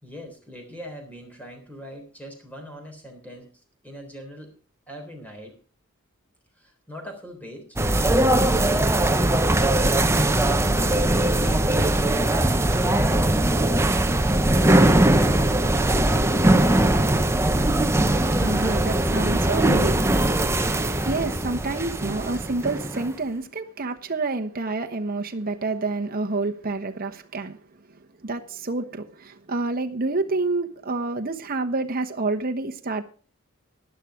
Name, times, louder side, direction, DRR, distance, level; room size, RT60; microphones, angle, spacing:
voice 1, 0.0-4.5 4.9-5.6 6.6-7.7 8.0-12.1 12.6-14.7, equal, 5° left, 3.6 m, -41 dB
sound 1, 7.8-23.1, right 1 dB, 10° right, 0.7 m, -20 dB
voice 2, 18.3-20.0 20.4-20.6 21.0-27.6 28.2-33.0, right 3 dB, 40° right, 1.1 m, -28 dB
11.5 x 11.0 x 5.0 m
head